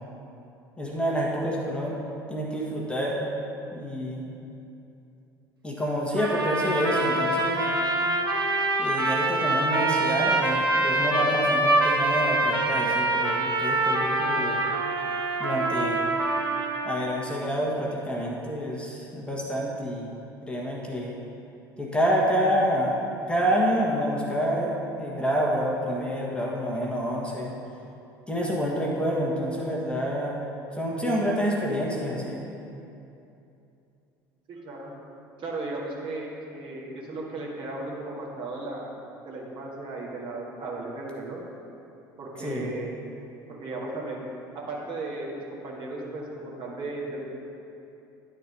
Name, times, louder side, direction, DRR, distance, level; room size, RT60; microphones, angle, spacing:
voice 1, 0.8-2.0 2.3-3.2 3.7-4.2 5.6-7.7 8.8-14.6 15.4-16.0 16.8-20.1 20.4-21.1 21.8-22.9 23.3-27.5 28.3-30.4 30.7-32.5 42.4-42.7, equal, 10° left, -3 dB, 1.4 m, -28 dB
sound 1, 6.2-17.2, right 2 dB, 90° right, 0.7 m, -25 dB
voice 2, 34.5-34.9 35.4-38.9 39.2-41.4 42.2-43.1 43.4-44.3 44.5-47.2, right 2 dB, 45° right, -4 dB, 1.8 m, -36 dB
11.0 x 4.4 x 5.2 m, 2.8 s
figure-of-eight pair, 65°, 12 cm